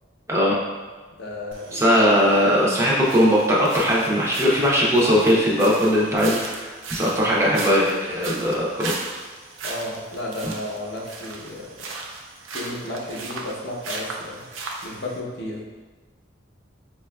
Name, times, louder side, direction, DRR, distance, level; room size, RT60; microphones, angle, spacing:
voice 1, 0.3-0.6 1.7-9.0, equal, 15° right, -5 dB, 0.4 m, -19 dB
voice 2, 1.2-1.8 9.6-11.9 12.5-14.5 14.8-15.6, left 1 dB, 65° left, -3 dB, 0.7 m, -33 dB
sound 1, 1.5-15.2, right 3 dB, 90° right, 0.4 m, -37 dB
4.7 x 2.2 x 2.2 m, 1.3 s
head